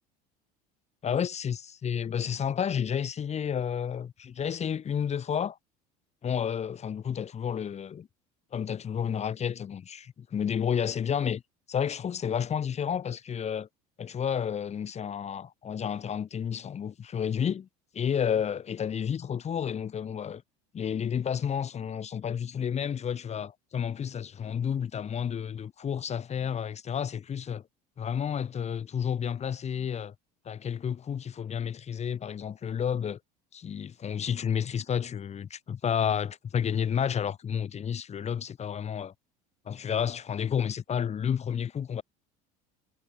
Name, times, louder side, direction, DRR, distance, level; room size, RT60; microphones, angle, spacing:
voice 1, 1.0-5.6 6.2-8.1 8.5-11.4 11.7-13.7 14.0-17.7 17.9-20.4 20.7-27.6 28.0-30.1 30.4-33.2 33.5-39.1 39.7-42.0, left 8 dB, 35° left, 5.8 m, -31 dB
supercardioid pair, 100°, 19 cm